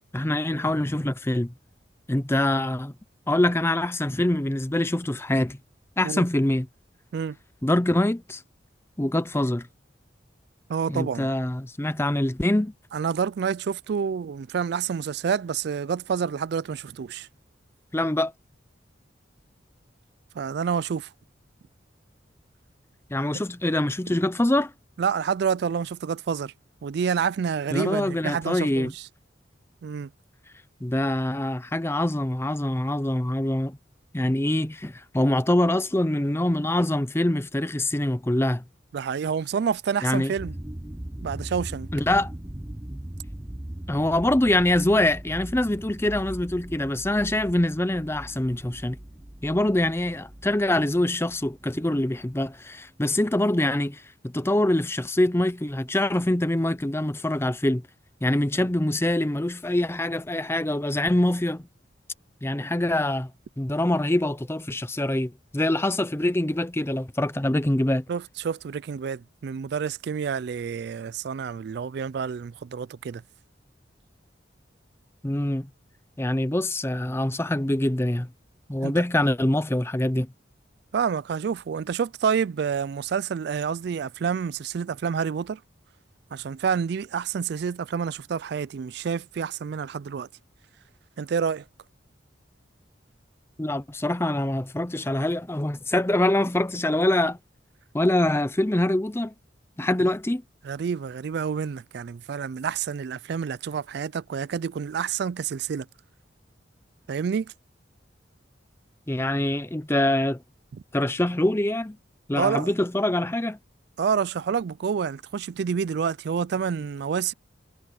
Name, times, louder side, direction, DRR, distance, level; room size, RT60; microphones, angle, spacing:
voice 1, 0.1-1.5 2.1-2.9 3.3-5.6 6.0-6.7 7.6-8.4 9.0-9.7 10.9-12.7 17.9-18.3 23.1-24.7 27.7-28.9 30.8-33.8 34.1-38.6 40.0-40.3 41.9-42.3 43.9-49.0 49.4-57.8 58.2-61.6 62.4-63.3 63.6-68.0 75.2-75.7 76.2-78.3 78.7-80.3 93.6-97.4 97.9-99.3 99.8-100.4 109.1-110.4 110.9-112.0 112.3-113.6, left 1 dB, 15° left, 0.6 m, -24 dB
voice 2, 10.7-11.3 12.9-17.3 20.4-21.1 25.0-26.5 26.8-29.1 29.8-30.1 38.9-40.6 41.2-41.9 68.1-73.2 78.8-79.0 80.9-85.6 86.3-90.3 91.2-91.6 100.6-105.9 107.1-107.5 112.4-112.7 114.0-117.3, right 6 dB, 60° right, 0.3 m, -28 dB
sound 1, 40.4-52.6, right 1 dB, 15° right, 0.9 m, -40 dB
head